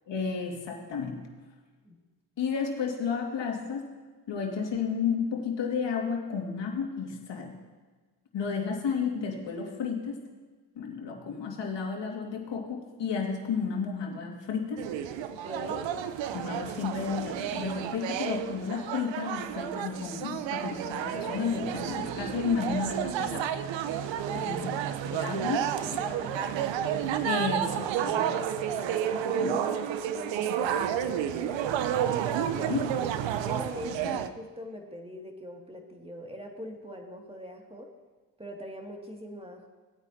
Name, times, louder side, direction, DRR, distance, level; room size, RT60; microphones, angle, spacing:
voice 1, 0.1-1.2 2.4-3.9 4.3-7.5 8.3-10.2 10.8-14.9 16.3-23.5 24.3-24.8 25.0-25.7 27.2-28.4 29.2-29.6 32.7-32.8 34.0-34.2, left 6 dB, 60° left, 1 dB, 2.1 m, -32 dB
sound 1, 14.8-34.3, right 9 dB, 65° right, 0.8 m, -31 dB
voice 2, 15.3-16.0 24.3-25.0 25.4-26.5 28.5-32.9 33.4-37.9 38.4-39.7, equal, 10° right, 1 dB, 2.2 m, -42 dB
17.5 x 9.0 x 2.8 m, 1.4 s
hypercardioid pair, 45°, 48 cm